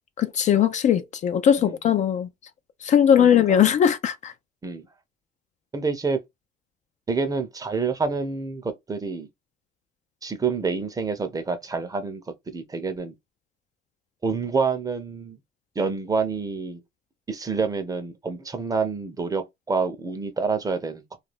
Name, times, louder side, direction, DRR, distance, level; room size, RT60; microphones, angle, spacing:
voice 1, 0.2-2.3 2.8-4.3, left 9 dB, 45° left, 0.4 m, -19 dB
voice 2, 3.2-3.6 4.6-4.9 5.7-6.2 7.1-9.3 10.2-12.2 12.5-13.1 14.2-15.4 15.8-16.8 17.3-21.2, right 4 dB, 20° right, 0.6 m, -27 dB
2.4 x 2.2 x 3.2 m
cardioid pair, 110°, 17 cm